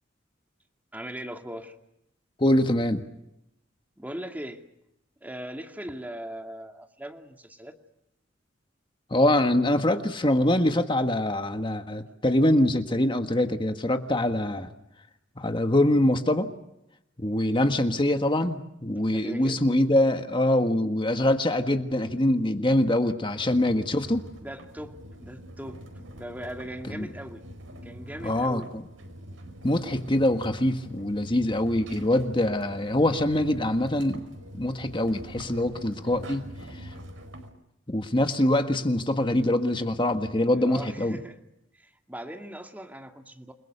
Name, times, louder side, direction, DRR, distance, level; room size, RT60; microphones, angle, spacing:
voice 1, 0.9-1.7 4.0-4.6 5.2-7.7 19.1-19.6 23.4-23.5 24.4-25.8 26.2-27.4 27.8-28.7 40.5-41.4 41.8-43.5, right 1 dB, 10° right, 4 dB, 2.3 m, -39 dB
voice 2, 2.4-3.1 9.1-14.7 15.4-16.5 17.2-24.3 26.9-27.1 28.2-28.8 29.6-34.2 34.5-36.4 36.7-36.9 37.9-41.2, left 1 dB, 25° left, 7 dB, 1.5 m, -24 dB
sound 1, 23.4-37.5, equal, 85° right, 4.8 m, -44 dB
29.0 x 21.0 x 6.7 m, 0.83 s
head